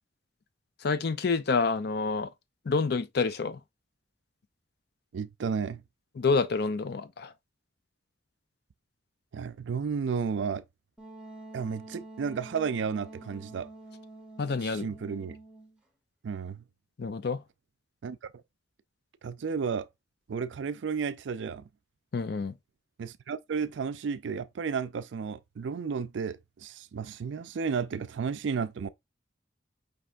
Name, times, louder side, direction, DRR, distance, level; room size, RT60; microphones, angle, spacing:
voice 1, 0.8-2.3 2.7-3.6 6.2-7.3 14.4-14.9 17.0-17.4 22.1-22.5, left 4 dB, 60° left, 0.5 m, -28 dB
voice 2, 5.1-5.8 9.3-10.6 11.5-13.7 14.6-15.4 16.2-16.6 18.0-18.2 19.2-19.9 20.3-21.6 23.0-28.9, right 6 dB, 85° right, 0.4 m, -32 dB
Wind instrument woodwind instrument, 11.0-15.8, right 2 dB, 5° right, 0.8 m, -47 dB
5.1 x 3.3 x 2.5 m
head